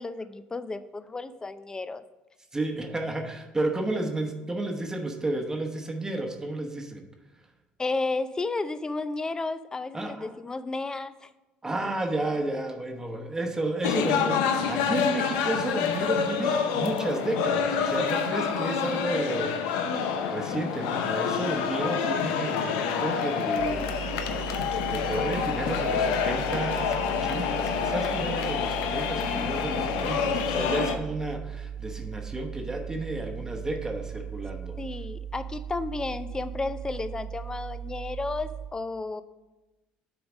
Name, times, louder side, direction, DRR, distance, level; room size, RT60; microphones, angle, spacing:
voice 1, 0.0-2.0 7.8-11.3 29.2-30.0 34.8-39.2, left 3 dB, 20° left, 14 dB, 0.4 m, -33 dB
voice 2, 2.5-7.0 9.9-10.3 11.6-24.4 24.9-34.8, right 2 dB, 15° right, 3 dB, 1.0 m, -32 dB
sound 1, 13.8-31.0, left 6 dB, 85° left, 0.6 m, -27 dB
sound 2, 23.6-38.7, right 8 dB, 85° right, 1.7 m, -38 dB
6.9 x 3.9 x 6.1 m, 1.1 s
supercardioid pair, 85°, 4 cm